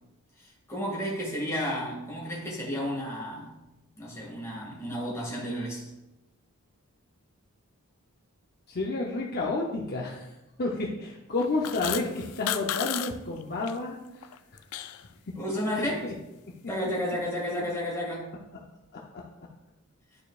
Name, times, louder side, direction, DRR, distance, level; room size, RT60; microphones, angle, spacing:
voice 1, 0.7-3.5 4.0-5.9 15.4-15.9 16.7-18.4, equal, 15° left, -5 dB, 2.0 m, -32 dB
voice 2, 8.7-10.3 10.6-14.0 15.8-16.1 19.1-19.2, left 2 dB, 45° left, -1 dB, 0.7 m, -30 dB
sound 1, 11.4-13.1 13.4-13.7 14.1-15.0, left 11 dB, 80° left, 0.4 m, -33 dB
11.0 x 4.5 x 2.4 m, 0.97 s
head